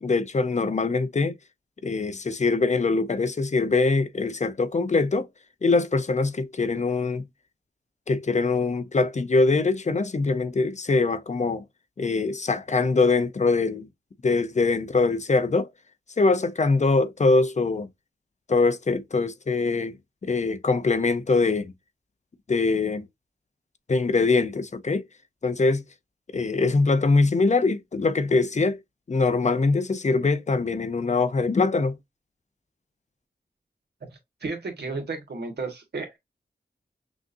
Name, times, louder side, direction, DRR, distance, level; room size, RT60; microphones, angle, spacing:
voice 1, 0.0-1.3 1.8-5.3 5.6-7.2 8.1-11.6 12.0-13.9 14.2-15.7 16.2-17.9 18.5-20.0 20.2-21.7 22.5-23.0 23.9-25.0 25.4-25.8 26.3-28.8 29.1-32.0, left 3 dB, 45° left, 0.6 m, -23 dB
voice 2, 34.4-36.2, right 3 dB, 85° right, 1.6 m, -33 dB
6.1 x 2.6 x 2.6 m
wide cardioid pair, 90°, 17 cm